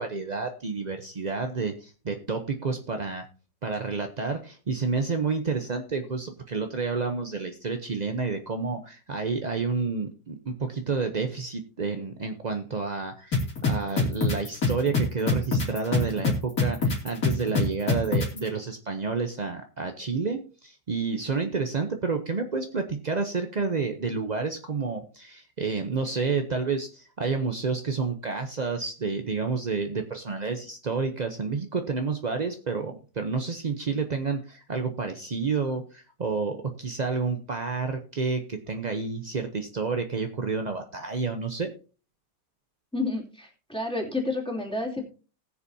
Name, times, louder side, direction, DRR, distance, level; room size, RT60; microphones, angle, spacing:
voice 1, 0.0-3.3 3.6-41.7, right 4 dB, 50° right, 6 dB, 0.5 m, -30 dB
sound 1, 13.3-18.4, left 4 dB, 55° left, 3.3 m, -23 dB
voice 2, 42.9-45.0, left 2 dB, 5° left, -1 dB, 2.6 m, -30 dB
19.5 x 7.1 x 2.7 m, 0.37 s
omnidirectional pair, 1.9 m